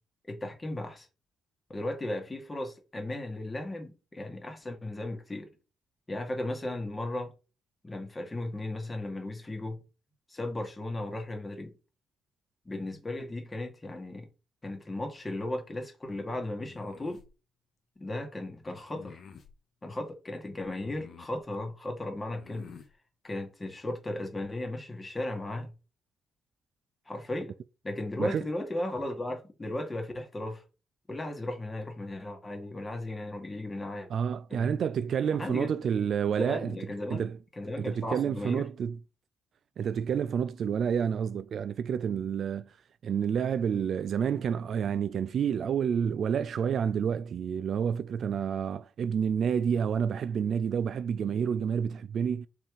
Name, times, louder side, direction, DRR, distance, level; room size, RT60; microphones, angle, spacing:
voice 1, 0.3-1.1 1.7-5.5 6.1-7.3 7.8-9.8 10.3-11.7 12.7-14.3 14.6-17.2 18.0-19.2 19.8-22.8 23.2-25.7 27.1-27.6 27.8-30.6 31.1-34.1 34.5-34.7 35.4-35.8 36.4-37.3 37.6-38.7, left 1 dB, 20° left, 1.9 m, -36 dB
sound 1, 16.6-17.3 18.9-19.5 20.7-21.4 22.3-22.9, left 7 dB, 55° left, 1.1 m, -50 dB
voice 2, 34.1-36.8 37.1-37.4 37.8-39.0 39.8-42.7 43.0-52.5, right 7 dB, 60° right, 0.3 m, -29 dB
5.5 x 3.6 x 4.8 m
cardioid pair, 90°, 0 cm